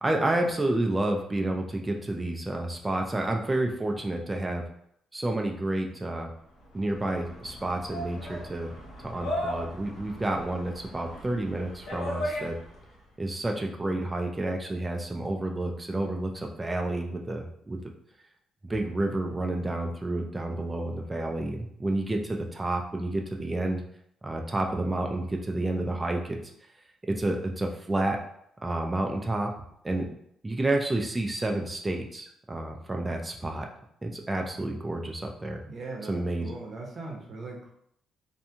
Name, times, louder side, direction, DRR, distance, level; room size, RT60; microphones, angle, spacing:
voice 1, 0.0-4.6 5.1-6.3 6.7-8.7 9.0-12.6 13.2-17.8 18.7-23.8 24.2-26.4 27.2-28.2 28.6-29.5 29.8-30.1 30.4-33.7 34.0-35.6 36.1-36.5, right 2 dB, 15° right, 2 dB, 0.4 m, -30 dB
sound 1, 6.6-13.0, left 1 dB, 80° left, 0.8 m, -37 dB
voice 2, 35.6-37.7, right 3 dB, 50° right, 0 dB, 0.8 m, -39 dB
2.6 x 2.2 x 2.8 m, 0.70 s
cardioid pair, 90°, 0 cm